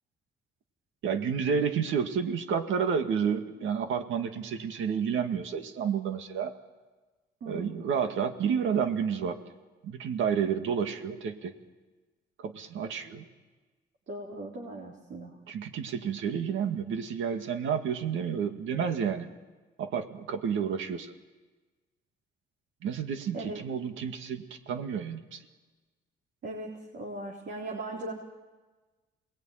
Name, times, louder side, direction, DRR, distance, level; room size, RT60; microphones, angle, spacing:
voice 1, 1.0-6.6 7.5-9.4 9.8-11.5 12.4-13.3 15.5-19.3 19.8-21.1 22.8-25.4, right 7 dB, 80° right, 6 dB, 2.1 m, -30 dB
voice 2, 7.4-7.8 14.1-15.4 23.3-23.7 26.4-28.1, right 2 dB, 60° right, -2 dB, 3.8 m, -38 dB
28.0 x 20.5 x 9.3 m, 1.3 s
cardioid pair, 90°, 20 cm